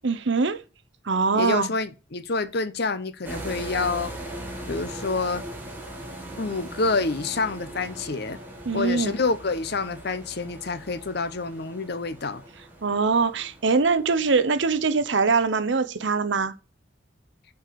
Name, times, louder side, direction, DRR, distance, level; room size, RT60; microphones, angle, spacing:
voice 1, 0.0-0.6 1.1-1.7 8.7-9.1 12.8-16.5, right 4 dB, 65° right, 0.8 m, -23 dB
voice 2, 1.3-4.1 4.7-5.4 6.4-8.4 8.7-12.4, left 3 dB, 55° left, 0.8 m, -27 dB
sound 1, 3.2-15.3, right 1 dB, 10° right, 2.0 m, -40 dB
6.5 x 4.7 x 6.8 m
head